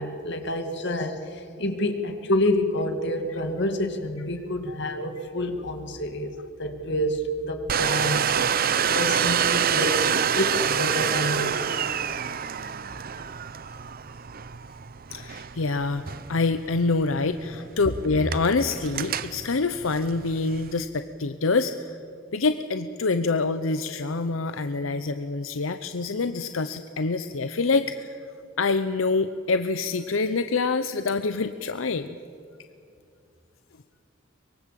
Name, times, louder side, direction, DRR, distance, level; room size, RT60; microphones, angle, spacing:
voice 1, 0.0-6.3 6.6-11.7, left 1 dB, 60° left, 6 dB, 2.3 m, -28 dB
Domestic sounds home sounds, 7.7-20.8, right 8 dB, 50° right, 0.7 m, -27 dB
voice 2, 15.1-22.0 22.3-28.2 28.6-32.1, left 3 dB, 85° left, 10 dB, 0.7 m, -26 dB
24.0 x 22.5 x 7.6 m, 2.5 s
head